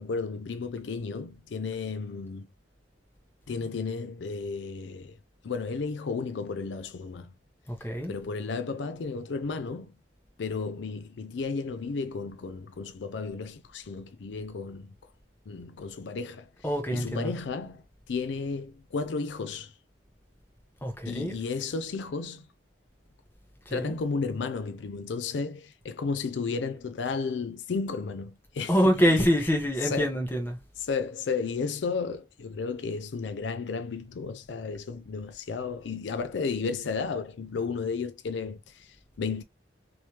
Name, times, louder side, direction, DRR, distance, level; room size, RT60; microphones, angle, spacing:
voice 1, 0.0-2.5 3.5-5.2 5.4-7.3 8.1-9.9 10.4-14.9 15.5-16.5 16.9-19.7 21.1-22.5 23.7-29.3 29.8-30.1 30.8-39.4, left 4 dB, 75° left, 0.4 m, -33 dB
voice 2, 7.7-8.1 16.6-17.4 20.8-21.4 23.7-24.0 28.7-30.6, equal, 10° left, 1.0 m, -25 dB
3.2 x 3.2 x 2.8 m
head